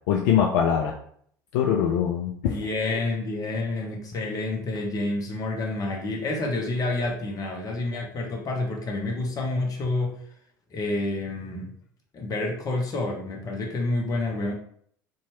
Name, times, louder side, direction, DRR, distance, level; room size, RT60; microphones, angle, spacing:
voice 1, 0.1-0.9 1.5-2.5, left 8 dB, 65° left, 1 dB, 0.4 m, -22 dB
voice 2, 2.5-10.1 10.7-11.7 12.1-14.5, left 2 dB, 35° left, 1 dB, 0.8 m, -28 dB
2.7 x 2.3 x 3.0 m, 0.63 s
hypercardioid pair, 70°, 11 cm